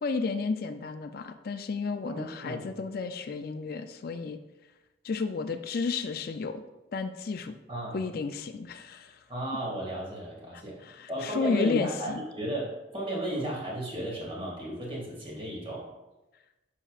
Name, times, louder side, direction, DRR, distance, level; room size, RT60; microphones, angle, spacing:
voice 1, 0.0-4.4 5.0-6.6 6.9-7.5 7.9-9.2 10.5-12.2, left 4 dB, 60° left, 9 dB, 0.4 m, -32 dB
voice 2, 2.1-2.7 7.7-8.0 9.3-15.9, right 1 dB, 30° right, -3 dB, 2.1 m, -34 dB
9.9 x 5.7 x 2.4 m, 1.0 s
head